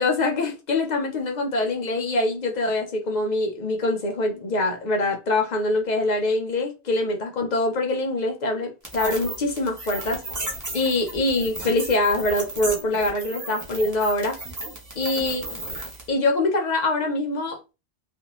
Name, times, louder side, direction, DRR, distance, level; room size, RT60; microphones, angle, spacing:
voice 1, 0.0-10.2 10.7-14.4 15.0-15.4 16.1-17.6, left 2 dB, 50° left, 0.6 m, -24 dB
sound 1, 8.8-16.1, right 2 dB, 20° right, 0.6 m, -35 dB
2.5 x 2.3 x 2.9 m
omnidirectional pair, 1.2 m